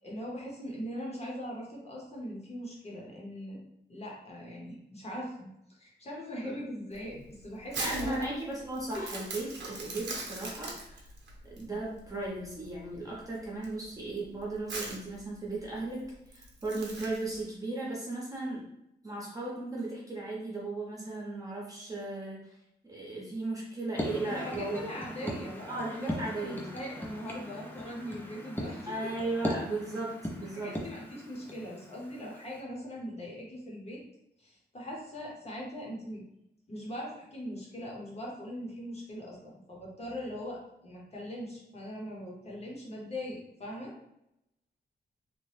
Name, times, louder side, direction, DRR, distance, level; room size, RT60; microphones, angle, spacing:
voice 1, 0.0-3.6 3.9-8.3 8.9-9.0 24.2-29.1 30.5-34.0 34.4-36.2 36.7-43.9, equal, 35° left, -3 dB, 0.8 m, -41 dB
Crumpling crinkling, 6.9-17.4, right 2 dB, 85° right, 0.8 m, -42 dB
voice 2, 7.8-11.0 11.4-18.6 19.0-22.5 22.8-24.9 25.2-25.3 25.7-26.7 28.9-30.8, right 2 dB, 20° right, -4 dB, 0.8 m, -36 dB
sound 1, 24.0-32.6, equal, 10° left, 0.5 m, -39 dB
2.8 x 2.2 x 3.2 m, 0.82 s
wide cardioid pair, 140°, 18 cm